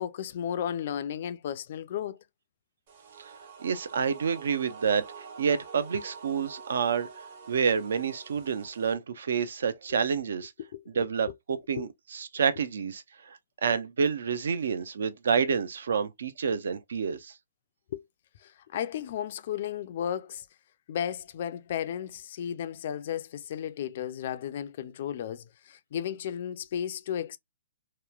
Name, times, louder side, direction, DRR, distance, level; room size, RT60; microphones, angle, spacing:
voice 1, 0.0-2.2 10.6-10.8 11.8-11.9 17.9-18.0 18.4-20.5 20.9-27.4, left 9 dB, 45° left, 0.3 m, -34 dB
sound 1, 2.9-8.9, right 5 dB, 35° right, 0.7 m, -47 dB
voice 2, 3.6-10.5 10.9-17.3, right 6 dB, 70° right, 0.5 m, -29 dB
2.9 x 2.1 x 2.3 m
hypercardioid pair, 170°, 0 cm